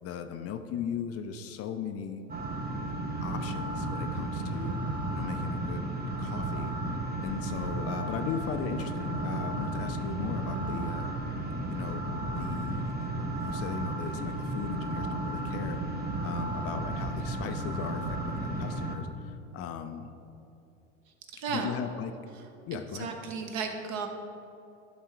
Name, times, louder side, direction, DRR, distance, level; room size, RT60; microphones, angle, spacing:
voice 1, 0.0-2.2 3.2-4.8 5.1-5.9 6.2-6.9 7.2-11.2 11.7-12.1 12.3-12.8 13.2-20.1 21.5-22.1 22.7-23.1, left 8 dB, 40° left, 7 dB, 0.5 m, -38 dB
sound 1, 2.3-19.0, right 2 dB, 25° right, 0.9 m, -33 dB
voice 2, 21.3-21.7 22.7-24.1, right 5 dB, 50° right, 4 dB, 1.1 m, -34 dB
10.5 x 3.7 x 4.6 m, 2.7 s
hypercardioid pair, 85°, 37 cm